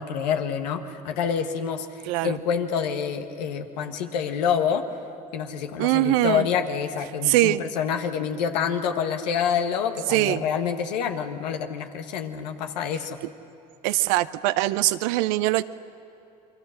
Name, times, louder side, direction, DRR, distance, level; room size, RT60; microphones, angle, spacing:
voice 1, 0.0-4.8 5.3-13.2, left 7 dB, 85° left, 6 dB, 1.4 m, -27 dB
voice 2, 2.1-2.4 5.8-6.5 7.2-7.6 10.1-10.4 13.8-15.6, right 17 dB, 80° right, 14 dB, 0.7 m, -22 dB
28.5 x 23.0 x 6.5 m, 2.8 s
hypercardioid pair, 65°, 21 cm